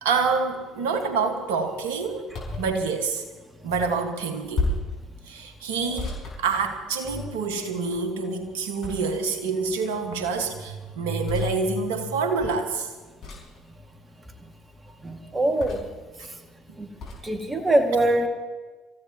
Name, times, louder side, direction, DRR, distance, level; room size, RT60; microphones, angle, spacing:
voice 1, 0.0-3.2 3.6-4.7 5.3-12.9, right 4 dB, 75° right, 6 dB, 1.7 m, -27 dB
sound 1, 2.3-2.7 4.5-5.0 6.0-7.1 8.8-9.4 11.2-11.5 13.2-13.6 15.6-16.0 17.0-17.2, left 2 dB, 60° left, 5.1 m, -32 dB
voice 2, 15.0-15.8 16.8-16.9 17.2-18.3, right 1 dB, 25° right, 4 dB, 2.3 m, -23 dB
27.0 x 15.0 x 3.0 m, 1.3 s
hypercardioid pair, 55°, 0 cm